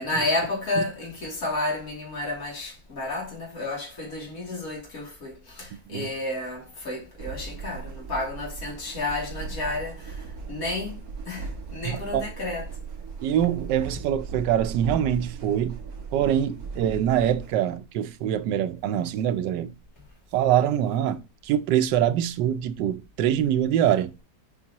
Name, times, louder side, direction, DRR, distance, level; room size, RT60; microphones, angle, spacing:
voice 1, 0.0-12.7, left 2 dB, 55° left, 3.0 m, -31 dB
sound 1, 7.2-17.5, right 4 dB, 65° right, 1.5 m, -38 dB
voice 2, 11.8-12.3 13.2-15.8 16.1-19.7 20.3-24.1, right 10 dB, 90° right, 1.3 m, -24 dB
7.5 x 4.8 x 2.9 m
omnidirectional pair, 1.8 m